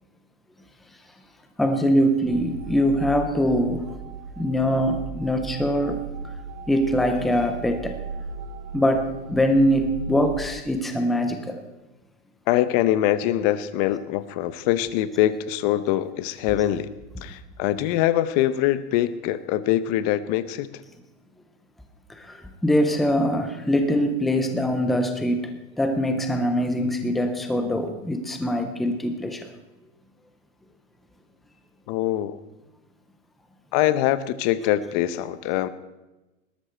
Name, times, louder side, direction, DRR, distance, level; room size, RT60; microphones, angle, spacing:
voice 1, 1.6-3.9 4.4-6.0 6.7-8.0 8.7-11.6 22.1-29.5, equal, ahead, 6 dB, 0.4 m, -23 dB
sound 1, 2.2-10.5, right 4 dB, 60° right, 3.8 m, -37 dB
voice 2, 12.5-16.9 17.2-20.8 31.9-32.4 33.7-35.7, left 13 dB, 30° left, 15 dB, 0.7 m, -23 dB
20.0 x 12.5 x 4.4 m, 1.1 s
hypercardioid pair, 150°, 40 cm